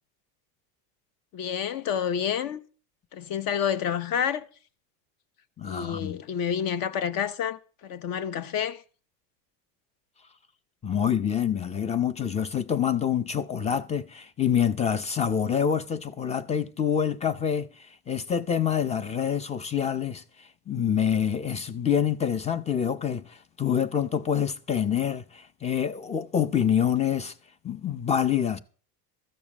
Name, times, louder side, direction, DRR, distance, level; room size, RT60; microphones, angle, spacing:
voice 1, 1.3-2.6 3.1-4.5 5.6-8.8, left 8 dB, 45° left, 1.1 m, -29 dB
voice 2, 5.6-6.2 10.8-17.7 18.1-20.2 20.7-27.3 27.6-28.6, left 8 dB, 15° left, 0.5 m, -26 dB
14.0 x 7.0 x 7.2 m
supercardioid pair, 135°, 48 cm